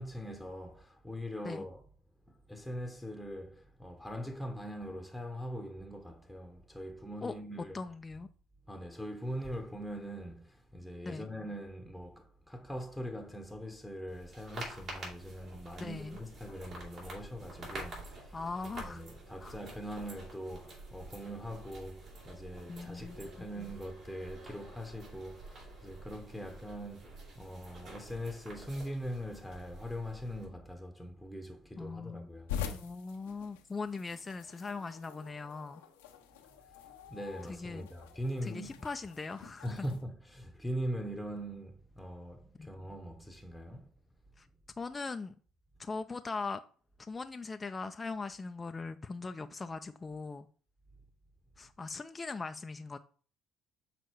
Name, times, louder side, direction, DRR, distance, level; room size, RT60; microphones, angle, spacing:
voice 1, 0.0-1.9 2.3-7.8 8.7-32.6 37.1-38.8 39.6-43.9, equal, ahead, 1.0 m, -42 dB
voice 2, 7.7-8.3 11.1-11.3 15.8-16.2 18.3-19.0 19.4-19.6 22.7-23.2 31.8-32.3 32.7-35.8 37.5-37.9 38.4-39.9 42.6-42.7 44.4-44.5 44.8-45.3 45.8-46.6 47.0-50.5 51.6-53.0, left 4 dB, 25° left, 0.4 m, -40 dB
sound 1, 14.1-30.5, right 2 dB, 55° right, 3.5 m, -48 dB
sound 2, 32.5-40.0, left 8 dB, 90° left, 0.8 m, -45 dB
6.4 x 4.1 x 4.6 m
hypercardioid pair, 65°, 0 cm